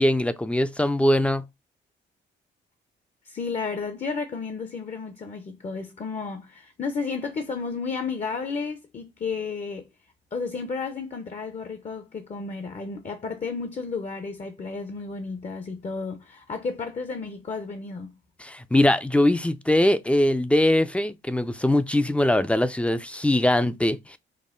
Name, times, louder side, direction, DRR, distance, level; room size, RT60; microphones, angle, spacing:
voice 1, 0.0-1.4 18.4-24.2, left 1 dB, 5° left, 0.4 m, -22 dB
voice 2, 3.2-9.9 10.3-18.1, left 4 dB, 35° left, 0.7 m, -32 dB
5.4 x 2.0 x 3.7 m
cardioid pair, 90°, 20 cm